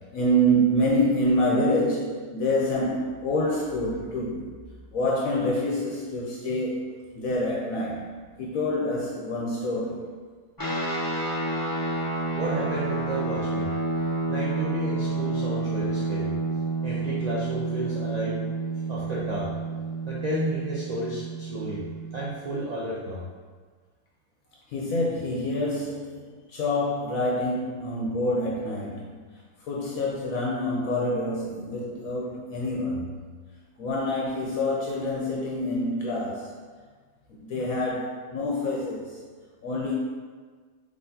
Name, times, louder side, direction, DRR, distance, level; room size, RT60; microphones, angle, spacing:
voice 1, 0.1-4.5 4.9-8.0 8.4-10.0 24.7-26.2 26.5-29.1 29.6-33.1 33.8-36.5 37.3-39.2 39.6-39.9, equal, 70° left, -4 dB, 1.1 m, -26 dB
sound 1, 10.6-22.3, right 3 dB, 30° left, 0.4 m, -29 dB
voice 2, 12.4-13.7 14.3-16.3 16.8-18.4 18.9-19.5 20.1-21.8 22.1-23.2, right 1 dB, 45° right, -7 dB, 0.5 m, -32 dB
5.6 x 3.2 x 2.8 m, 1.5 s
omnidirectional pair, 1.6 m